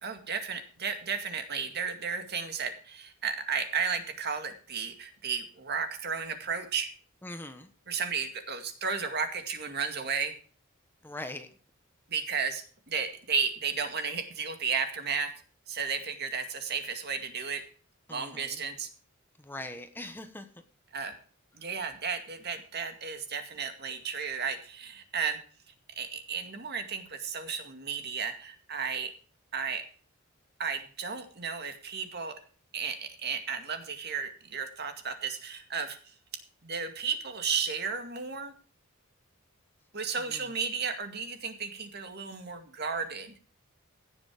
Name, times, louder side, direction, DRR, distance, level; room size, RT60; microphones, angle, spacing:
voice 1, 0.0-6.9 7.9-10.4 12.1-15.3 15.7-17.6 18.1-18.9 20.9-21.1 21.5-25.4 26.0-29.1 29.5-29.9 30.6-32.4 32.7-36.0 36.6-38.5 39.9-43.3, right 6 dB, 50° right, 7 dB, 2.2 m, -33 dB
voice 2, 7.2-7.7 11.0-11.5 18.1-18.6 19.4-20.5 40.3-40.5, left 1 dB, 10° left, 7 dB, 1.1 m, -41 dB
16.5 x 7.2 x 4.9 m, 0.41 s
head